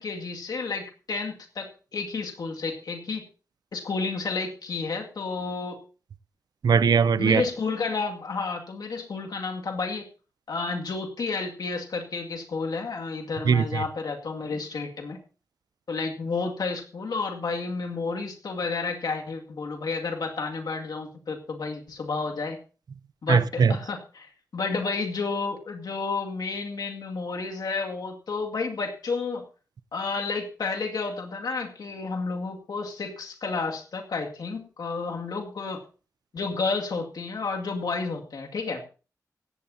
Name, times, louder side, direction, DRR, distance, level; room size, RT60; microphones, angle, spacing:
voice 1, 0.0-3.3 3.7-5.8 7.2-10.1 10.5-15.2 15.9-22.6 23.2-29.4 29.9-35.8 36.3-38.8, left 4 dB, 80° left, 2.2 m, -31 dB
voice 2, 6.6-7.4 13.4-13.8 23.3-23.8, right 6 dB, 80° right, 0.6 m, -20 dB
17.0 x 15.0 x 2.8 m
wide cardioid pair, 90°, 7 cm